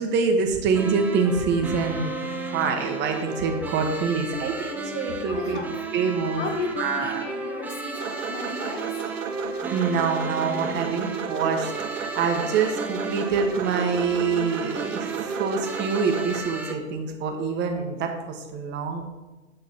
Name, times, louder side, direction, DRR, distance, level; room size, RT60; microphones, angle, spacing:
voice 1, 0.0-2.1 2.5-5.6 5.9-6.4 6.8-7.2 9.7-19.1, right 5 dB, 25° right, 4 dB, 1.3 m, -26 dB
sound 1, 0.7-16.7, right 3 dB, 5° right, 0.5 m, -33 dB
voice 2, 5.3-5.7 6.2-9.0, left 4 dB, 70° left, 2 dB, 2.1 m, -34 dB
sound 2, 7.9-16.4, right 8 dB, 75° right, 0.8 m, -34 dB
8.7 x 6.5 x 4.3 m, 1.1 s
hypercardioid pair, 110°, 38 cm